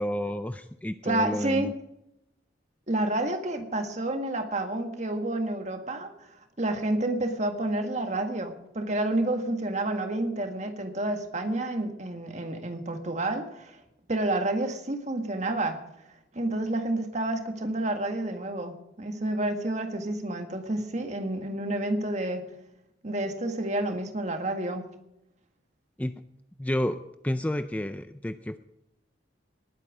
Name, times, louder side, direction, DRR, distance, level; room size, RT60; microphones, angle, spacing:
voice 1, 0.0-1.7 26.0-26.1 26.6-28.6, left 1 dB, 10° left, 10 dB, 0.4 m, -30 dB
voice 2, 1.0-1.7 2.9-6.1 6.6-13.8 14.1-15.8 16.3-22.5 23.0-24.9, right 1 dB, 40° right, 6 dB, 1.7 m, -29 dB
19.5 x 9.1 x 5.0 m, 0.86 s
head